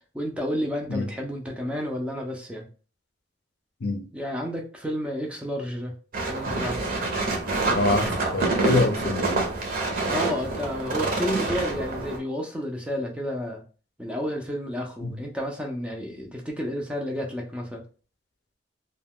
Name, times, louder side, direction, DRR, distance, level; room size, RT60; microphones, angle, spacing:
voice 1, 0.1-2.7 4.1-5.9 6.3-6.9 10.1-13.6 14.0-17.8, equal, 5° right, 0.4 m, -31 dB
sound 1, 6.1-12.2, right 3 dB, 50° right, 0.7 m, -27 dB
voice 2, 7.7-9.4 15.0-15.2, left 3 dB, 60° left, 0.5 m, -25 dB
2.2 x 2.2 x 3.5 m
head